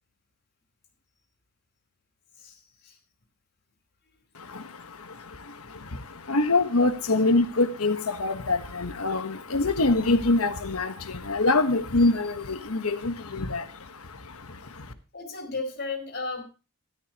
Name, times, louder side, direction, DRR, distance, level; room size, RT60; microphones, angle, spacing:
voice 1, 4.3-14.9, left 2 dB, 75° left, 9 dB, 1.4 m, -25 dB
voice 2, 14.8-16.4, left 3 dB, 50° left, 4 dB, 4.7 m, -34 dB
13.0 x 12.5 x 3.0 m, 0.33 s
head